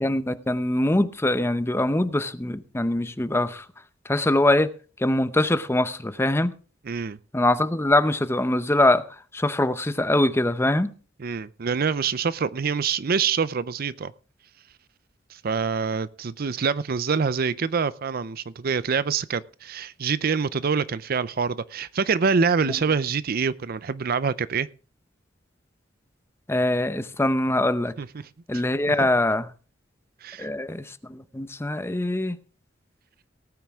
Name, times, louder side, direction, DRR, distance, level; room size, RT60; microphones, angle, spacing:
voice 1, 0.0-3.7 4.1-4.7 5.0-6.5 7.3-9.0 9.3-10.9 22.6-22.7 26.5-27.9 28.5-29.5 30.4-32.4, left 1 dB, 15° left, 12 dB, 0.7 m, -23 dB
voice 2, 6.9-7.2 11.2-14.1 15.4-24.7 28.0-28.3 30.2-30.5, right 5 dB, 50° right, 17 dB, 0.5 m, -25 dB
18.0 x 9.3 x 3.6 m, 0.37 s
head